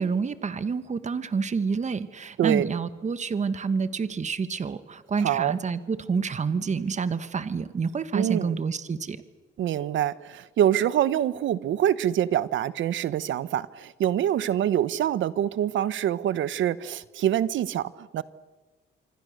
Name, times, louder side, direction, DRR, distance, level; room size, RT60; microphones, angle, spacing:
voice 1, 0.0-9.2, right 5 dB, 35° right, 12 dB, 1.5 m, -28 dB
voice 2, 5.2-5.5 8.1-8.6 9.6-18.2, right 11 dB, 75° right, 16 dB, 1.1 m, -25 dB
26.0 x 24.5 x 6.7 m, 1.3 s
cardioid pair, 90°, 20 cm